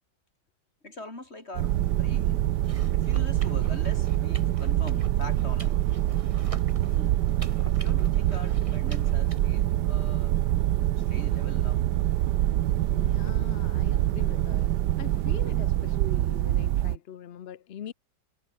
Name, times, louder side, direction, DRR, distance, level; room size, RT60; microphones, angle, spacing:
voice 1, 0.8-2.5 2.9-5.8 6.9-7.2 7.8-10.4 11.0-11.9, left 2 dB, 35° left, 5.2 m, -43 dB
sound 1, 1.5-17.0, right 13 dB, 80° right, 1.3 m, -25 dB
sound 2, 2.6-9.4, right 2 dB, 20° right, 1.9 m, -48 dB
voice 2, 12.9-14.7 15.0-17.9, left 9 dB, 55° left, 0.7 m, -42 dB
omnidirectional pair, 1.8 m